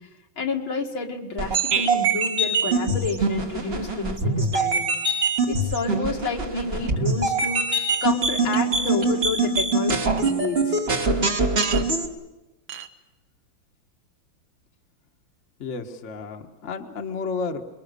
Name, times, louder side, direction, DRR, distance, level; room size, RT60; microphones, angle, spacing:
voice 1, 0.4-4.9 5.5-10.8, left 4 dB, 80° left, 1 dB, 3.0 m, -29 dB
sound 1, 1.4-12.1, right 3 dB, 35° right, 1.5 m, -23 dB
Chink clink, 10.2-10.3 11.6-11.9 12.7-12.9, right 10 dB, 75° right, 1.8 m, -33 dB
voice 2, 15.6-17.6, left 4 dB, 40° left, 4 dB, 1.5 m, -32 dB
28.0 x 23.0 x 6.8 m, 1.1 s
omnidirectional pair, 2.2 m